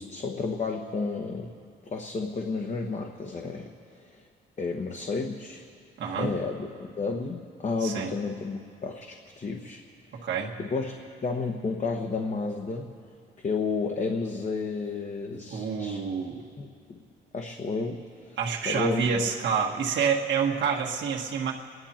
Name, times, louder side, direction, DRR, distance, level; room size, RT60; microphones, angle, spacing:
voice 1, 0.0-1.5 1.9-3.7 4.1-4.2 4.6-5.6 6.1-6.7 7.0-9.8 10.1-10.2 10.6-10.9 11.2-12.9 13.4-16.0 16.6-16.7 17.3-18.4 18.6-19.2, left 4 dB, 35° left, 2 dB, 1.3 m, -31 dB
voice 2, 6.0-6.3 7.8-8.1 10.2-10.5 15.5-16.4 18.4-21.5, right 6 dB, 65° right, -3 dB, 1.8 m, -28 dB
29.5 x 11.0 x 4.4 m, 2.4 s
cardioid pair, 90°, 20 cm